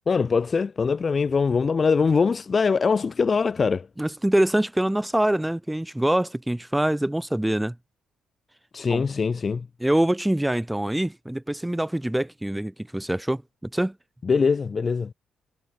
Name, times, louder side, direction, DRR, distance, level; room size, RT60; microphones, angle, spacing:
voice 1, 0.1-3.9 8.7-9.7 14.2-15.1, left 5 dB, 40° left, 4.1 m, -22 dB
voice 2, 4.0-7.8 8.9-9.0 9.8-13.9, right 1 dB, 5° right, 3.8 m, -24 dB
cardioid pair, 85°, 0 cm